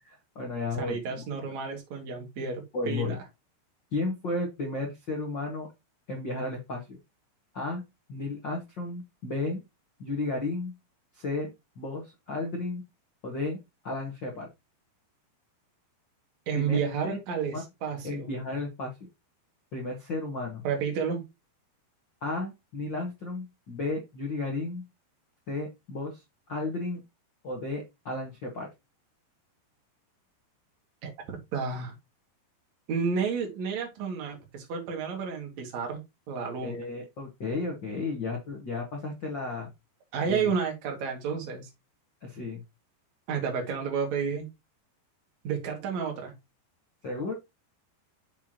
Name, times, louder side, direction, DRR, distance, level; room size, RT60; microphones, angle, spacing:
voice 1, 0.1-1.2 2.7-3.2 3.9-5.7 6.1-7.0 7.5-7.8 8.1-9.6 10.0-10.7 11.1-12.8 13.2-13.6 13.8-14.5 16.5-16.8 17.0-17.2 17.5-17.6 18.0-19.0 19.7-20.6 22.2-24.8 25.5-26.2 26.5-27.0 27.4-28.7 36.6-39.7 40.2-40.5 42.2-42.6 47.0-47.3, left 3 dB, 70° left, 1.1 m, -33 dB
voice 2, 0.8-3.2 16.5-18.3 20.6-21.2 31.0-31.1 31.5-31.9 32.9-36.0 36.3-36.8 40.1-41.7 43.3-44.5 45.4-46.3, right 6 dB, 50° right, 2.9 m, -31 dB
7.1 x 7.1 x 3.0 m
omnidirectional pair, 5.1 m